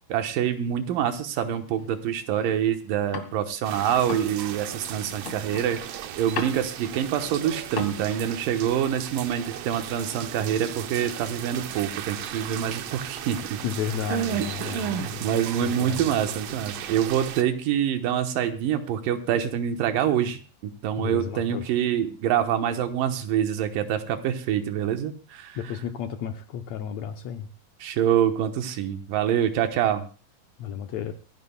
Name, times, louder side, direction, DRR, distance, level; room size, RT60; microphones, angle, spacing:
voice 1, 0.1-5.8 6.2-13.6 14.1-25.6 27.8-30.1, right 9 dB, 90° right, 7 dB, 2.8 m, -26 dB
sound 1, 0.9-3.6 3.9-8.0, left 5 dB, 45° left, 2.1 m, -38 dB
sound 2, 3.6-17.4, right 10 dB, 70° right, 1.6 m, -37 dB
voice 2, 13.6-15.3 15.6-16.0 21.0-21.7 25.5-27.5 30.6-31.1, left 9 dB, 70° left, 7 dB, 1.8 m, -33 dB
25.5 x 11.0 x 2.3 m, 0.37 s
omnidirectional pair, 3.8 m